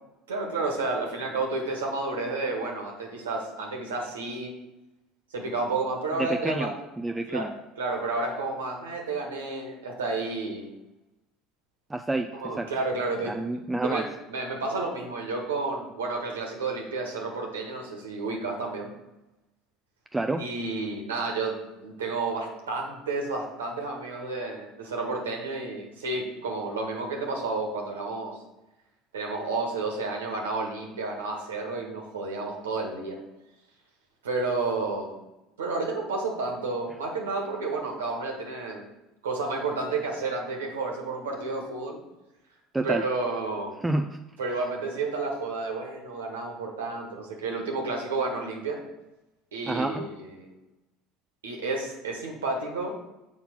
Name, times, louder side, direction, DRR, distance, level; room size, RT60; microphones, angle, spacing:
voice 1, 0.3-4.5 5.3-6.7 7.3-7.5 7.8-10.7 12.3-18.9 20.4-21.6 21.8-28.3 29.1-33.2 34.2-35.2 35.6-38.8 39.2-42.0 42.8-43.7 44.4-48.8 49.5-50.4 51.4-53.0, right 3 dB, 85° right, 1 dB, 1.5 m, -31 dB
voice 2, 6.2-7.5 11.9-12.3 12.6-12.7 13.2-14.0 20.1-20.4 42.7-43.0 43.8-44.2 49.7-50.1, right 2 dB, 10° right, 5 dB, 0.5 m, -28 dB
6.8 x 4.3 x 5.9 m, 0.97 s
hypercardioid pair, 70°, 0 cm